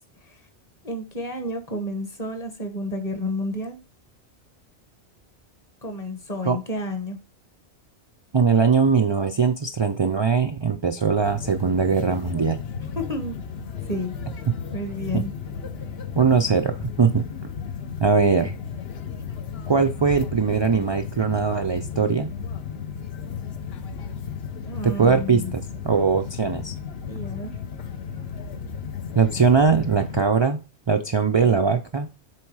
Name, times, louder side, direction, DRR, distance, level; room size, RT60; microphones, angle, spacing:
voice 1, 0.8-3.8 5.8-7.2 12.9-13.4 13.9-14.2 14.7-15.3 24.7-25.5 27.1-27.5, left 1 dB, 35° left, 1.3 m, -30 dB
voice 2, 8.3-12.6 15.1-15.2 16.1-17.2 18.0-18.5 19.7-22.3 24.8-26.7 29.1-30.6 30.9-32.1, right 5 dB, 40° right, 0.4 m, -21 dB
sound 1, 11.2-30.2, left 6 dB, 65° left, 1.0 m, -34 dB
7.6 x 3.5 x 4.7 m
omnidirectional pair, 1.2 m